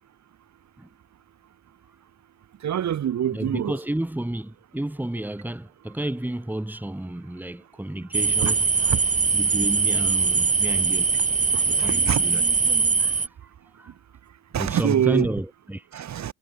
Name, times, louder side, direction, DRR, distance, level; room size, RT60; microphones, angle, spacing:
voice 1, 2.6-3.8 8.4-8.5 8.8-9.0 11.5-12.2 14.5-15.3 15.9-16.3, right 10 dB, 60° right, 1.5 m, -25 dB
voice 2, 3.3-8.7 9.3-11.1 11.6-12.4 13.0-13.2 13.8-13.9 14.6-16.0, right 1 dB, 5° right, 2.1 m, -31 dB
sound 1, 8.1-13.3, right 4 dB, 25° right, 1.1 m, -22 dB
cardioid pair, 95°, 32 cm